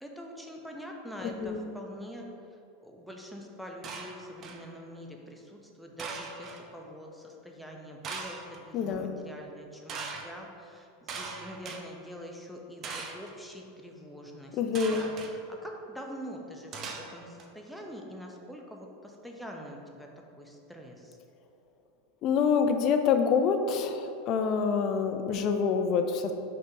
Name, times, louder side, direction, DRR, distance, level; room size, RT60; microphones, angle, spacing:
voice 1, 0.0-2.2 2.8-10.8 11.1-14.5 14.9-15.1 15.6-17.3 17.5-20.1 20.4-20.9, equal, ahead, 0 dB, 0.8 m, -44 dB
voice 2, 1.2-1.6 8.7-9.1 14.5-15.0 22.2-26.3, left 6 dB, 45° left, 6 dB, 0.5 m, -26 dB
sound 1, 3.8-4.7 6.0-6.6 8.0-8.6 9.9-10.3 11.1-11.8 12.8-13.3 14.7-15.3 16.7-17.4, right 4 dB, 40° right, 0.7 m, -39 dB
5.2 x 4.0 x 4.6 m, 2.7 s
hypercardioid pair, 90°, 0 cm